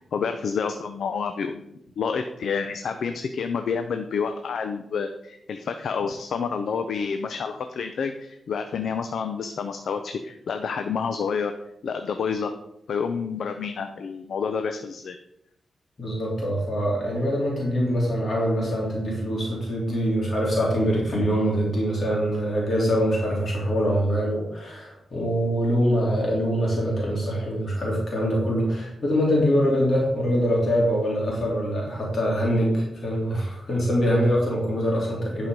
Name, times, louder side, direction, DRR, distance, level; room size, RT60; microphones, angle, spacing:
voice 1, 0.1-11.5 11.8-12.5 12.9-15.2, left 6 dB, 75° left, 7 dB, 0.6 m, -29 dB
voice 2, 16.0-35.5, equal, 45° left, -3 dB, 3.1 m, -24 dB
11.0 x 5.1 x 5.3 m, 0.80 s
wide cardioid pair, 130°, 0 cm